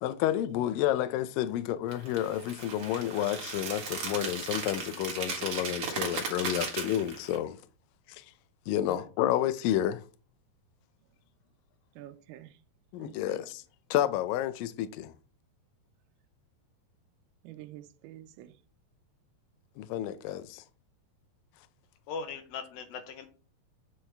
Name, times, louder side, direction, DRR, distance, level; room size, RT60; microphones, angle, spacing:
voice 1, 0.0-7.6 8.1-8.2 8.7-10.0 12.9-13.6 13.9-15.1 19.8-20.6, left 12 dB, 90° left, 1.9 m, -30 dB
sound 1, 1.9-7.4, right 5 dB, 50° right, 1.9 m, -36 dB
voice 2, 8.9-9.3 12.0-12.5 13.0-13.4 17.4-18.5, right 13 dB, 85° right, 2.5 m, -47 dB
voice 3, 22.1-23.3, left 5 dB, 75° left, 2.4 m, -39 dB
8.2 x 6.3 x 3.4 m
omnidirectional pair, 4.7 m